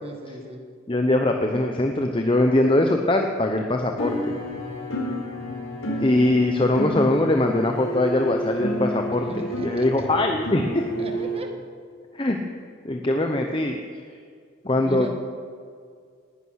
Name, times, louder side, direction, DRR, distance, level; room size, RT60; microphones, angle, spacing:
voice 1, 0.0-0.6 2.4-2.8 9.3-10.1 11.0-11.5 14.8-15.2, equal, 30° right, 3 dB, 1.7 m, -36 dB
voice 2, 0.9-4.3 6.0-9.2 9.6-10.8 12.1-12.4 12.8-13.8 14.6-15.2, left 1 dB, 25° left, 3 dB, 0.9 m, -22 dB
sound 1, 4.0-11.4, equal, 80° left, 4.0 m, -30 dB
19.0 x 11.5 x 6.5 m, 2.1 s
head